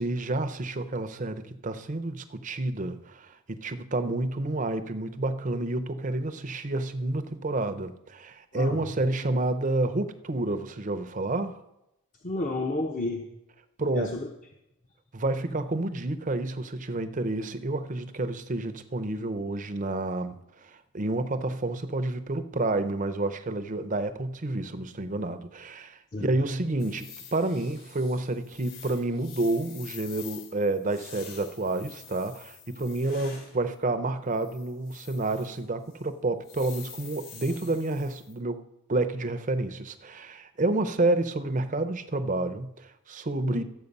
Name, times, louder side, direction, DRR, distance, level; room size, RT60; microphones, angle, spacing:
voice 1, 0.0-11.6 13.8-14.2 15.1-38.6 38.9-43.6, right 2 dB, 35° right, 0.6 m, -29 dB
voice 2, 12.2-13.2 13.9-14.3 26.1-26.3 43.4-43.6, left 2 dB, 35° left, 0.9 m, -31 dB
sound 1, 26.8-33.5 34.3-35.6 35.9-36.0 36.4-38.3, left 7 dB, 60° left, 4.6 m, -47 dB
12.5 x 7.6 x 5.4 m
head